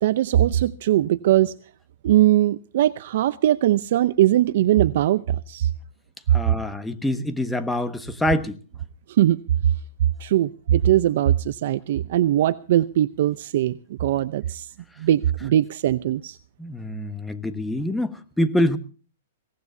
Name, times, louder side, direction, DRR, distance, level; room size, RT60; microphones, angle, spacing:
voice 1, 0.0-1.5 2.0-5.7 9.1-9.4 10.2-14.7 15.0-16.4, right 12 dB, 60° right, 0.6 m, -20 dB
voice 2, 6.3-8.6 16.6-18.8, left 1 dB, 5° left, 1.3 m, -25 dB
22.5 x 18.5 x 2.7 m
hypercardioid pair, 150°, 0 cm